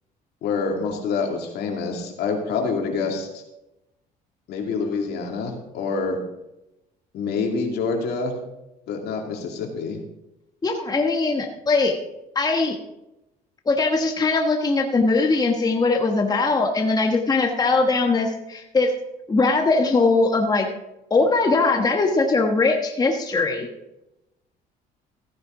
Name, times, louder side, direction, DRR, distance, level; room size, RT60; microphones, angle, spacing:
voice 1, 0.4-3.4 4.5-6.2 7.1-8.4 8.9-10.0, left 4 dB, 75° left, 2 dB, 2.5 m, -26 dB
voice 2, 10.6-12.0 12.3-12.8 13.7-18.9 19.3-20.7 21.1-23.7, left 3 dB, 25° left, 3 dB, 1.2 m, -20 dB
14.5 x 9.6 x 3.8 m, 0.92 s
cardioid pair, 110°, 17 cm